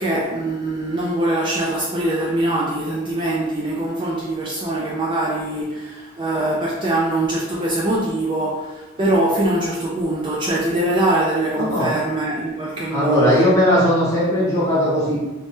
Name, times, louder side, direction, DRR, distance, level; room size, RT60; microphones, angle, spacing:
voice 1, 0.0-13.5, right 1 dB, 25° right, -5 dB, 0.3 m, -22 dB
voice 2, 11.6-11.9 12.9-15.2, equal, 15° left, -8 dB, 1.0 m, -18 dB
2.6 x 2.1 x 3.4 m, 1.1 s
head